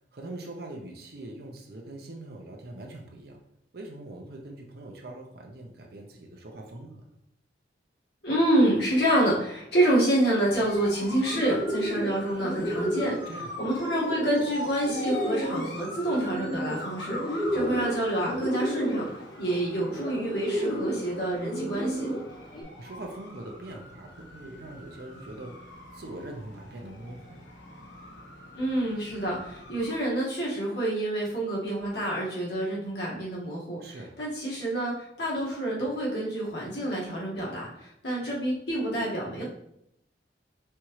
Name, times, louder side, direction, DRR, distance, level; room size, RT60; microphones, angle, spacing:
voice 1, 0.1-3.4 3.7-7.1 13.2-13.5 17.5-17.8 22.8-27.4 33.8-34.2, right 1 dB, 55° right, 1 dB, 0.6 m, -42 dB
voice 2, 8.2-13.1 13.6-19.1 19.4-22.1 28.5-33.8 34.2-39.4, right 1 dB, 65° left, -5 dB, 1.6 m, -27 dB
sound 1, 10.5-30.0, left 1 dB, 85° left, 1.1 m, -43 dB
Bird, 11.0-22.6, equal, 25° left, 0.9 m, -32 dB
4.4 x 3.6 x 3.1 m, 0.77 s
head